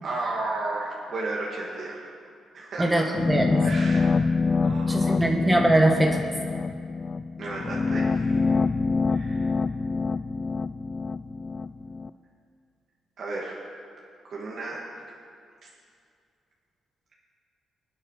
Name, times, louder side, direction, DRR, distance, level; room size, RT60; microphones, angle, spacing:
voice 1, 0.0-2.1 2.5-3.2 3.6-4.1 4.6-5.2 7.4-8.6 9.1-9.6 13.2-13.6 14.3-14.8, right 2 dB, 55° right, -4 dB, 2.2 m, -33 dB
voice 2, 2.8-3.7 4.9-6.3, right 1 dB, 10° right, 1 dB, 1.4 m, -22 dB
sound 1, 3.2-12.1, left 4 dB, 30° left, 0.4 m, -26 dB
25.0 x 8.7 x 5.8 m, 2.4 s
cardioid pair, 110°, 0 cm